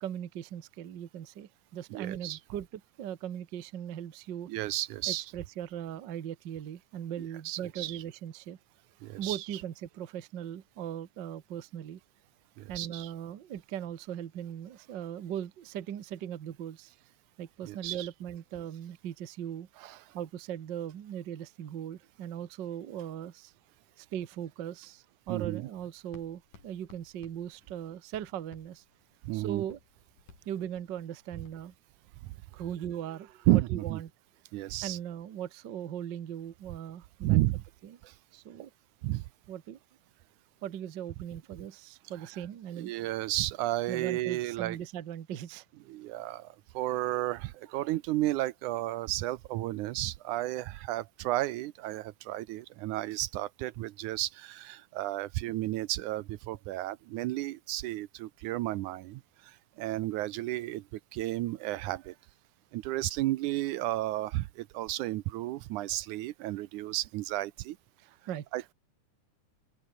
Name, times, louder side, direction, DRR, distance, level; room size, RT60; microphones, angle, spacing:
voice 1, 0.0-4.5 5.1-8.6 9.2-12.0 12.7-16.9 17.4-19.7 20.1-23.5 24.0-28.8 29.3-29.8 30.4-31.7 32.5-34.1 34.8-37.4 37.8-38.0 38.3-38.7 39.5-39.8 40.6-42.9 43.9-45.6 46.8-47.2 47.7-47.9 68.3-68.4, right 10 dB, 55° right, 1.3 m, -39 dB
voice 2, 1.9-2.4 4.5-5.3 7.2-8.0 9.0-9.6 12.6-13.1 17.6-18.1 19.8-20.0 25.3-25.7 29.2-29.6 32.2-32.3 33.5-34.0 34.5-35.0 37.2-37.6 38.0-38.1 39.0-39.2 42.8-44.8 45.9-62.2 62.7-67.8 68.5-68.7, right 16 dB, 80° right, 2.1 m, -32 dB
Writing, 25.5-31.8, left 4 dB, 85° left, 7.3 m, -59 dB
open air
omnidirectional pair, 3.6 m